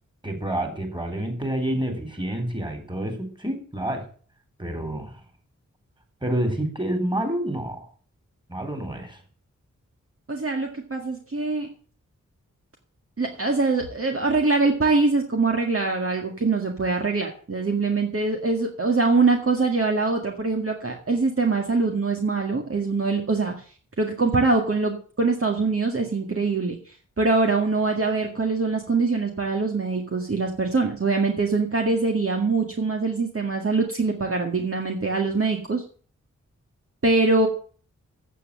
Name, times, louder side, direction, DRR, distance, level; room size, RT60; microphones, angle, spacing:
voice 1, 0.2-4.0 4.6-5.1 6.2-7.9 8.5-9.2, right 1 dB, 15° right, 6 dB, 4.0 m, -28 dB
voice 2, 10.3-11.7 13.2-23.5 24.0-35.8 37.0-37.5, right 3 dB, 45° right, 2 dB, 2.0 m, -23 dB
8.4 x 7.5 x 8.7 m, 0.43 s
cardioid pair, 45°, 31 cm